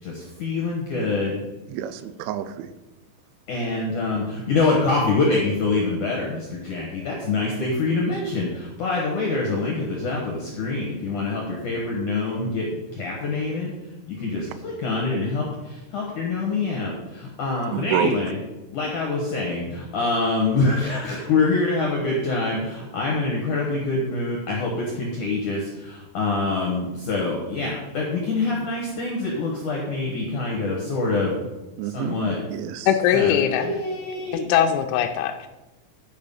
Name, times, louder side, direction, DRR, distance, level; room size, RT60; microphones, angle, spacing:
voice 1, 0.0-1.4 3.5-13.7 14.1-18.4 18.7-31.3 31.8-32.4 33.1-34.5, left 3 dB, 70° left, -2 dB, 2.0 m, -25 dB
voice 2, 1.7-2.7 17.7-18.2 31.8-32.2 32.5-32.9, right 10 dB, 90° right, 12 dB, 3.1 m, -27 dB
voice 3, 32.9-33.8 34.5-35.5, left 9 dB, 85° left, 5 dB, 2.9 m, -21 dB
10.5 x 5.3 x 5.4 m, 1.1 s
omnidirectional pair, 5.4 m